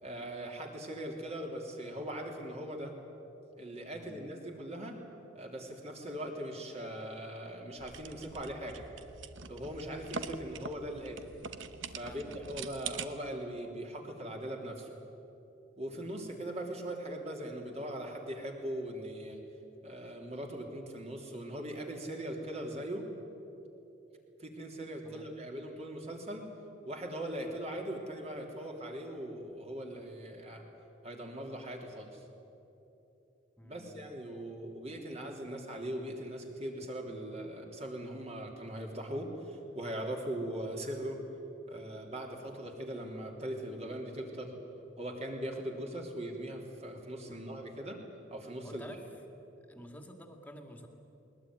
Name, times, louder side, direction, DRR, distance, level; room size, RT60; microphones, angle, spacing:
voice 1, 0.0-2.9 3.5-5.0 5.3-8.8 9.5-11.3 11.9-15.0 15.8-19.4 19.8-23.1 24.4-26.5 26.8-30.6 31.0-32.2 33.6-41.2 41.7-44.6 45.0-48.0 48.3-48.8, right 1 dB, 35° right, 1 dB, 3.3 m, -40 dB
voice 2, 3.9-4.3 12.0-12.5 16.0-16.1 25.0-25.3 33.6-34.1 47.3-47.5 48.6-49.0 49.7-50.9, equal, 10° left, 4 dB, 2.2 m, -50 dB
sound 1, 7.8-13.1, right 5 dB, 85° right, 1.1 m, -44 dB
20.5 x 20.5 x 9.6 m, 2.9 s
head